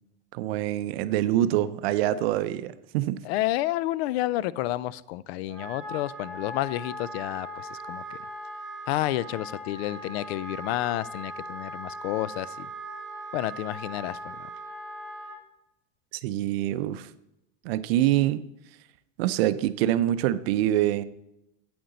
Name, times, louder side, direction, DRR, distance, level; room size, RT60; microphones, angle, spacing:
voice 1, 0.3-3.2 16.1-17.1 17.6-18.4 19.2-21.0, right 13 dB, 70° right, 14 dB, 0.6 m, -25 dB
voice 2, 3.2-8.2 8.9-12.7 13.3-14.4, left 15 dB, 75° left, 20 dB, 0.5 m, -30 dB
Wind instrument woodwind instrument, 5.5-15.4, equal, 5° left, 3.3 m, -39 dB
8.7 x 7.8 x 4.0 m, 0.87 s
supercardioid pair, 165°, 31 cm